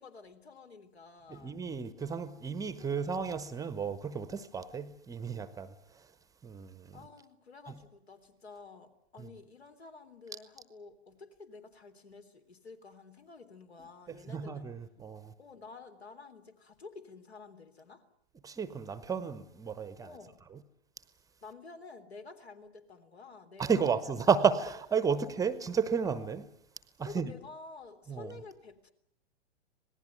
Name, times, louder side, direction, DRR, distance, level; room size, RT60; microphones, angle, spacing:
voice 1, 0.0-1.6 2.8-3.2 6.9-14.7 15.4-18.0 20.0-20.4 21.4-23.9 25.1-25.3 27.0-28.9, left 4 dB, 75° left, 3.5 m, -50 dB
voice 2, 1.3-6.1 6.4-7.0 7.7-7.8 9.2-9.3 14.1-15.3 18.4-20.1 20.5-20.6 23.6-26.5 27.0-27.3 28.1-28.4, right 6 dB, 10° right, 0.9 m, -32 dB
26.5 x 19.0 x 9.3 m
figure-of-eight pair, 110°, 32 cm